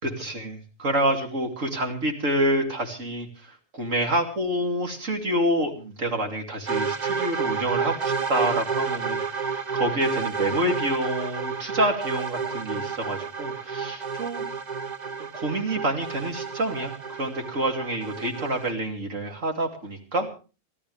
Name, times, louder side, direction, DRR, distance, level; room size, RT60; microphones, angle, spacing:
voice 1, 0.0-3.3 3.7-14.5 15.3-20.3, right 1 dB, 70° right, 4 dB, 3.1 m, -27 dB
sound 1, 6.7-18.7, right 5 dB, 35° right, 1.0 m, -30 dB
27.5 x 13.0 x 3.3 m, 0.34 s
omnidirectional pair, 1.4 m